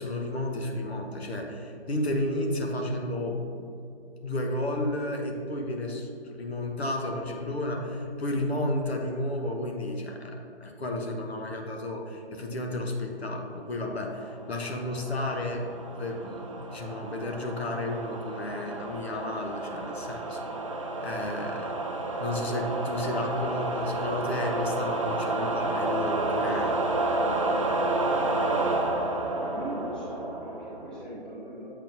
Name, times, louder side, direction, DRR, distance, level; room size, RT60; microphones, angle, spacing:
voice 1, 0.0-3.7 4.2-20.4 21.0-21.8 22.2-27.1, left 1 dB, 65° left, 1 dB, 1.1 m, -32 dB
sound 1, 14.5-31.0, right 2 dB, 30° right, 0.4 m, -30 dB
voice 2, 29.3-31.7, right 1 dB, ahead, -12 dB, 1.1 m, -39 dB
7.7 x 6.5 x 2.7 m, 2.7 s
figure-of-eight pair, 145°, 34 cm